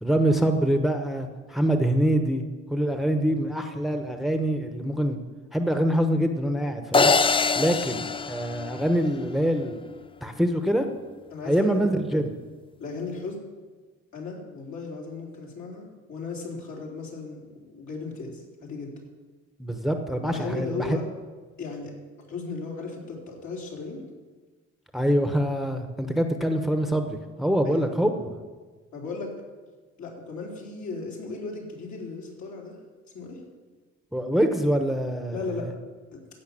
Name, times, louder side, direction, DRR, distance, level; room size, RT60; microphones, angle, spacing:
voice 1, 0.0-2.4 2.7-5.2 5.5-7.1 7.5-9.8 10.2-10.9 11.4-12.4 19.6-21.0 24.9-28.4 34.1-35.7, right 1 dB, ahead, 6 dB, 1.0 m, -25 dB
sound 1, 6.9-9.3, left 4 dB, 20° left, 0.4 m, -23 dB
voice 2, 11.3-11.8 12.8-13.4 14.1-18.9 20.2-21.0 21.6-21.9 22.3-24.0 27.6-27.8 28.9-29.3 30.0-32.8 33.1-33.4 35.3-35.7 36.1-36.2, left 4 dB, 65° left, -2 dB, 3.7 m, -36 dB
15.0 x 5.8 x 8.6 m, 1.4 s
cardioid pair, 90°, 30 cm